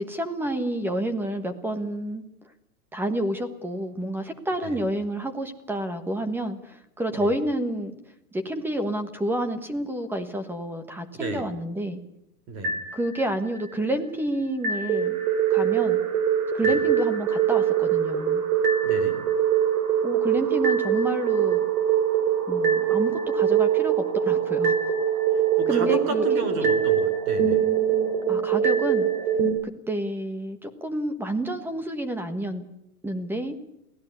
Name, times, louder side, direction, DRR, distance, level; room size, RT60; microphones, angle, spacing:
voice 1, 0.0-2.2 2.9-8.0 8.3-12.0 12.9-15.2 15.5-16.0 16.5-18.4 20.0-21.7 22.5-24.8 25.7-26.8 28.3-29.1 29.6-32.6 33.0-33.6, right 1 dB, 5° right, 9 dB, 1.3 m, -29 dB
voice 2, 11.1-11.5 12.5-12.8 16.6-16.8 18.8-19.2 25.6-27.7, right 4 dB, 30° right, 9 dB, 4.0 m, -32 dB
sound 1, 12.6-13.6 14.6-29.5, right 8 dB, 70° right, 5.1 m, -23 dB
23.5 x 16.5 x 8.3 m, 0.80 s
supercardioid pair, 165°, 46 cm